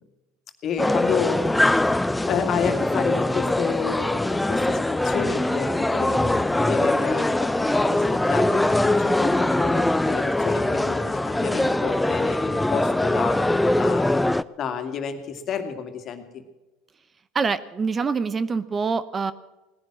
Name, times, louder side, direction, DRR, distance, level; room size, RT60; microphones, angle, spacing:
voice 1, 0.6-1.5 2.3-14.1 14.6-16.4, left 7 dB, 45° left, 7 dB, 2.1 m, -30 dB
sound 1, 0.8-14.4, left 1 dB, 5° left, 0.5 m, -22 dB
voice 2, 17.3-19.3, right 5 dB, 25° right, 15 dB, 0.7 m, -25 dB
18.0 x 10.5 x 7.5 m, 1.1 s
hypercardioid pair, 90°, 0 cm